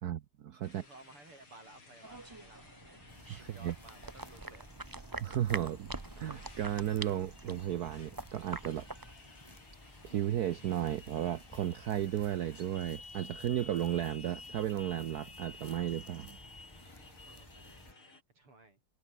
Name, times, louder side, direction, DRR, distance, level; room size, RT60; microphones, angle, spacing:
voice 1, 0.0-0.8 3.3-3.7 5.2-8.9 10.0-16.4, right 11 dB, 60° right, 1.0 m, -34 dB
Motorcycle, 0.6-18.2, left 3 dB, 70° left, 6.6 m, -54 dB
voice 2, 0.6-3.0 3.3-4.7 17.2-18.8, right 2 dB, 85° right, 8.7 m, -57 dB
sound 1, 2.0-9.1, right 2 dB, 30° right, 0.4 m, -45 dB
sound 2, 3.1-17.9, left 1 dB, 10° left, 6.5 m, -56 dB
omnidirectional pair, 2.4 m